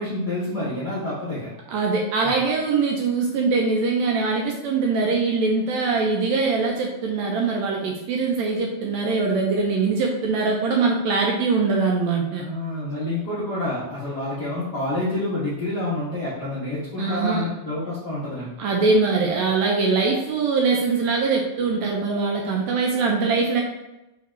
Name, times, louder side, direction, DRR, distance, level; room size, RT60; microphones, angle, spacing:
voice 1, 0.0-1.5 12.4-18.5, left 1 dB, 85° left, -8 dB, 0.8 m, -28 dB
voice 2, 1.7-12.5 17.0-17.5 18.6-23.6, right 4 dB, 80° right, 0 dB, 1.6 m, -22 dB
4.7 x 3.6 x 3.1 m, 0.94 s
omnidirectional pair, 3.6 m